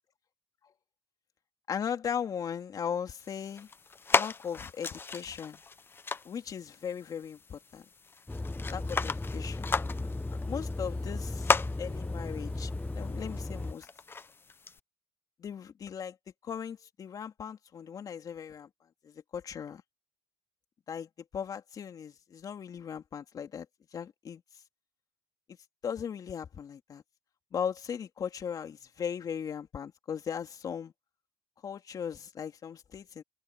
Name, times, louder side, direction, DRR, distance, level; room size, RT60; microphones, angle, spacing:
voice 1, 1.7-3.7 4.1-5.6 6.2-7.8 8.7-9.7 10.0-10.1 10.5-13.9 15.4-16.2 16.4-18.7 19.0-19.8 20.9-23.7 23.9-24.4 25.8-27.0 27.5-30.9 31.6-33.2, left 7 dB, 45° left, 3.0 m, -38 dB
sound 1, 3.2-14.8, left 4 dB, 25° left, 1.0 m, -36 dB
sound 2, 8.3-13.7, left 2 dB, 10° left, 0.5 m, -36 dB
supercardioid pair, 85°, 9 cm